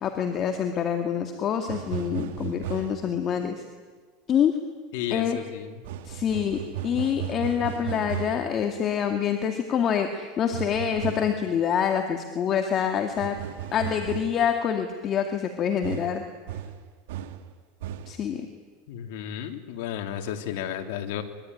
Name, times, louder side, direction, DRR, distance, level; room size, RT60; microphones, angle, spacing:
voice 1, 0.0-3.6 4.3-4.5 5.1-5.4 6.1-6.6 6.8-13.4 13.7-16.2 18.1-18.4, left 8 dB, 35° left, 5 dB, 2.3 m, -26 dB
sound 1, 1.7-3.1 5.8-8.5 10.5-11.4 13.2-14.5 15.8-17.5 17.8-18.2, right 11 dB, 80° right, 2.1 m, -35 dB
voice 2, 4.9-5.8 18.9-21.2, left 10 dB, 70° left, 5 dB, 3.0 m, -33 dB
24.5 x 23.0 x 9.7 m, 1.4 s
supercardioid pair, 135°, 0 cm